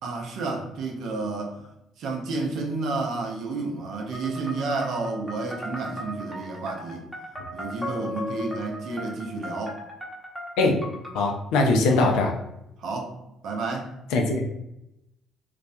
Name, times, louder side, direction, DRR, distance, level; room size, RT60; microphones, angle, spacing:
voice 1, 0.0-1.6 2.0-7.1 7.5-9.8 12.8-13.2 13.4-14.0, right 3 dB, 60° right, 1 dB, 0.5 m, -30 dB
sound 1, 4.1-11.3, left 1 dB, ahead, 0.8 m, -37 dB
voice 2, 11.1-12.3 14.1-14.4, left 2 dB, 65° left, 2 dB, 0.4 m, -21 dB
2.3 x 2.1 x 2.6 m, 0.87 s
figure-of-eight pair, 45°, 0 cm